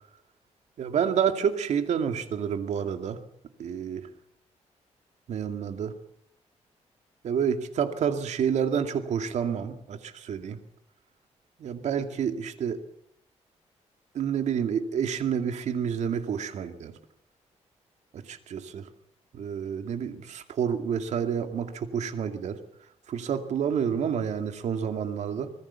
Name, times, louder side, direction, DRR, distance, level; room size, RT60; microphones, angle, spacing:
voice 1, 0.8-3.2 3.6-4.0 5.3-5.9 7.2-10.6 11.6-12.8 14.1-16.9 18.1-18.9 19.3-22.6 23.1-25.5, right 7 dB, 75° right, 7 dB, 2.4 m, -29 dB
25.0 x 20.0 x 7.2 m, 0.76 s
cardioid pair, 130°, 12 cm